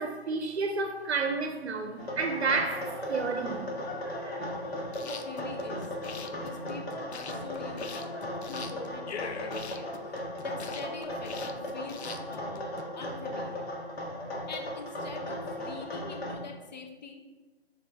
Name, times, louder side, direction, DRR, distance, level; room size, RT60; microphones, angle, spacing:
voice 1, 0.0-3.7, right 4 dB, 90° right, 0.6 m, -30 dB
sound 1, 2.0-16.3, left 1 dB, 70° left, 1.2 m, -37 dB
sound 2, 4.8-12.8, left 6 dB, 90° left, 0.5 m, -43 dB
voice 2, 5.0-6.0 6.3-8.1 8.5-13.7 14.5-17.2, left 4 dB, 45° left, 0.6 m, -44 dB
6.0 x 2.6 x 3.3 m
hypercardioid pair, 160°, 32 cm